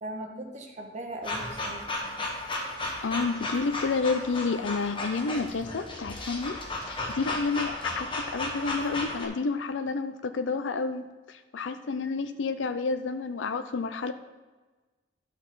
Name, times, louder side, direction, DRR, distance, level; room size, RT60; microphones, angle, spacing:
voice 1, 0.0-2.3, right 1 dB, 40° right, 2 dB, 1.3 m, -39 dB
sound 1, 1.2-9.3, left 2 dB, 30° left, 1.4 m, -34 dB
voice 2, 3.0-14.1, left 4 dB, 90° left, 9 dB, 0.5 m, -30 dB
11.0 x 6.3 x 4.0 m, 1.2 s
head